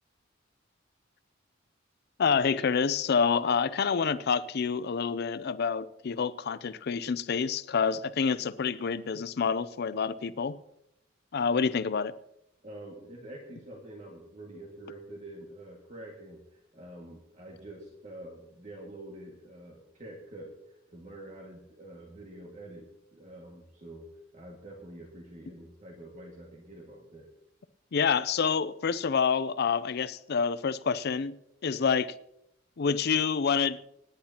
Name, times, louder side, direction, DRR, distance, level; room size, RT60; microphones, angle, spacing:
voice 1, 2.2-10.6 11.3-12.1 27.9-31.3 31.6-32.1 32.8-33.8, left 6 dB, 55° left, 0.5 m, -27 dB
voice 2, 12.6-20.6 20.9-24.1 24.3-27.3, right 1 dB, 40° right, 2.0 m, -46 dB
26.0 x 10.0 x 2.9 m
head